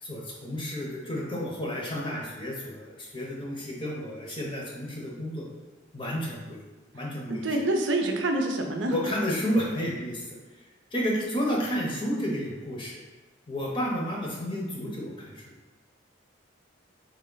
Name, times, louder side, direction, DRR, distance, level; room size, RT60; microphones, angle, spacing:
voice 1, 0.0-5.4 5.9-6.6 6.9-7.6 8.9-10.2 10.9-13.0 13.5-15.4, equal, 25° left, -3 dB, 0.8 m, -31 dB
voice 2, 7.3-9.0, right 2 dB, 70° right, 4 dB, 0.6 m, -26 dB
3.5 x 3.2 x 3.8 m, 1.2 s
head